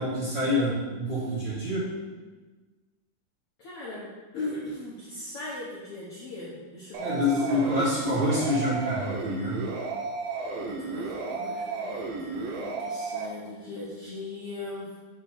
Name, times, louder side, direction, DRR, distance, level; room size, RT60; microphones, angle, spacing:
voice 1, 0.0-1.9 7.0-9.7, left 1 dB, 40° right, -10 dB, 1.9 m, -27 dB
voice 2, 3.6-7.7 8.0-8.7 10.6-15.0, left 2 dB, 90° left, -7 dB, 1.3 m, -39 dB
sound 1, 6.9-13.3, right 3 dB, 80° right, 2.4 m, -33 dB
6.7 x 3.5 x 6.1 m, 1.3 s
omnidirectional pair, 4.4 m